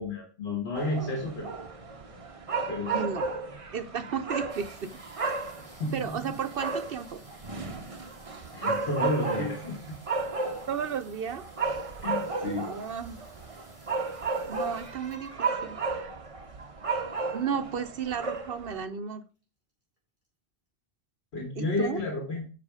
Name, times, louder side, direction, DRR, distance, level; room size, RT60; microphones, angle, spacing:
voice 1, 0.0-1.5 2.7-3.0 5.6-6.3 8.5-10.0 12.0-12.7 21.3-22.4, left 2 dB, 70° left, 0 dB, 1.9 m, -31 dB
sound 1, 0.7-18.8, right 4 dB, 35° right, 0.9 m, -34 dB
voice 2, 2.9-3.3 3.7-5.0 5.9-7.2 10.7-11.5 12.6-13.2 14.5-16.1 17.3-19.2 21.6-22.0, right 7 dB, 60° right, 10 dB, 0.9 m, -33 dB
sound 2, 4.5-17.0 17.9-18.0 18.1-18.5 18.9-19.4 20.0-20.1 20.3-20.4, equal, 15° right, 4.4 m, -58 dB
7.3 x 6.2 x 4.9 m, 0.36 s
omnidirectional pair, 1.1 m